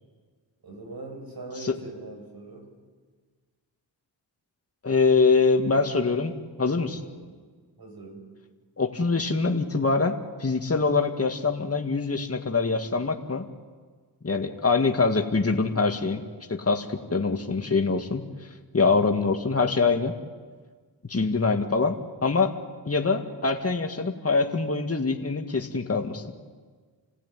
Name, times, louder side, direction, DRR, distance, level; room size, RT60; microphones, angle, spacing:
voice 1, 0.6-2.7 7.0-7.3 7.8-8.3 16.9-17.0, right 2 dB, 55° right, 3 dB, 6.9 m, -41 dB
voice 2, 4.8-6.3 6.6-7.0 8.8-10.1 10.4-13.5 14.2-16.2 16.5-18.2 18.7-20.1 21.1-22.5 22.9-26.3, left 4 dB, 30° left, 4 dB, 2.2 m, -24 dB
29.0 x 15.0 x 9.4 m, 1.5 s
cardioid pair, 50°, 44 cm